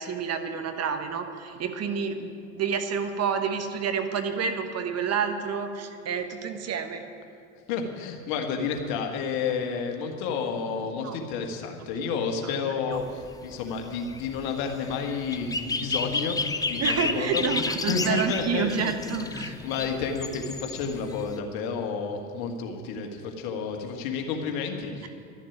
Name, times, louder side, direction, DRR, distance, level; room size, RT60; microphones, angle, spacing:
voice 1, 0.0-7.1 11.0-11.2 12.9-13.0 16.8-19.5, right 6 dB, 40° right, 7 dB, 1.3 m, -29 dB
voice 2, 7.7-25.1, left 5 dB, 60° left, 3 dB, 1.8 m, -31 dB
sound 1, 12.9-21.4, left 3 dB, 10° left, 0.5 m, -32 dB
12.0 x 7.2 x 9.9 m, 2.4 s
hypercardioid pair, 80°, 41 cm